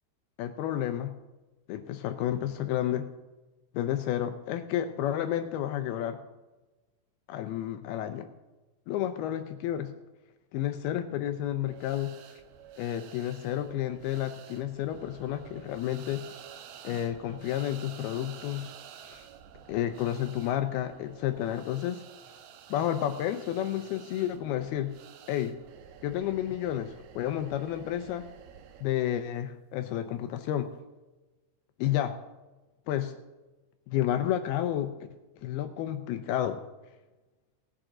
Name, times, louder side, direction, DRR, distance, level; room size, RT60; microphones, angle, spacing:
voice 1, 0.4-1.1 1.7-3.1 3.7-6.2 7.3-8.3 8.9-9.9 10.5-12.1 12.8-16.3 16.8-18.7 19.0-19.3 19.7-22.0 22.7-24.9 25.3-25.6 26.0-28.3 28.8-30.7 31.8-32.2 32.9-33.2 33.9-35.1 35.4-36.6, left 11 dB, 85° left, 8 dB, 2.3 m, -31 dB
sound 1, 11.7-28.9, right 9 dB, 75° right, 2.3 m, -51 dB
18.5 x 8.8 x 3.8 m, 1.1 s
omnidirectional pair, 5.0 m